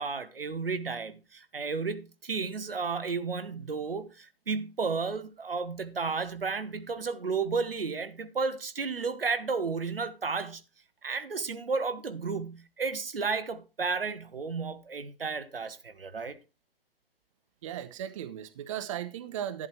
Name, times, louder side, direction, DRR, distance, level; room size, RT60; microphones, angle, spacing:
voice 1, 0.0-10.6 11.0-16.4, right 4 dB, 70° right, 1.2 m, -33 dB
voice 2, 17.6-19.7, right 10 dB, 35° right, 0.7 m, -36 dB
11.0 x 10.5 x 3.2 m
figure-of-eight pair, 125°, 30 cm